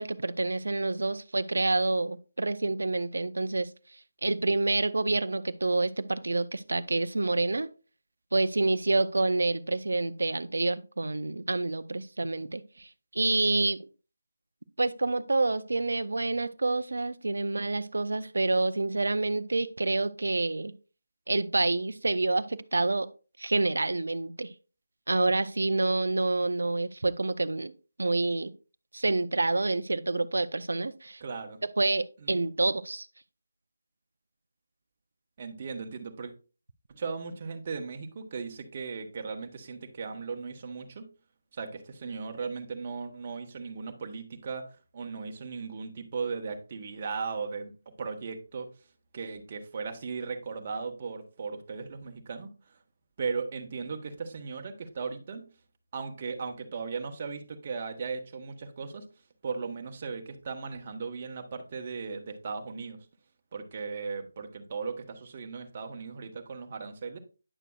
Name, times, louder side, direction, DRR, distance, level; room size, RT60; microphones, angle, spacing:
voice 1, 0.0-3.7 4.2-7.7 8.3-13.8 14.8-20.7 21.3-23.1 23.4-24.5 25.1-27.7 28.0-28.5 28.9-31.2 31.8-33.1, right 2 dB, 70° right, 0.6 m, -28 dB
voice 2, 31.2-31.6 32.2-32.4 35.4-36.3 36.9-41.1 41.5-44.7 44.9-47.7 48.0-48.7 49.1-52.8 53.2-55.5 55.9-59.1 59.4-63.1 63.5-67.2, right 5 dB, 35° right, 1.3 m, -37 dB
9.8 x 6.6 x 2.4 m
figure-of-eight pair, 155°, 0 cm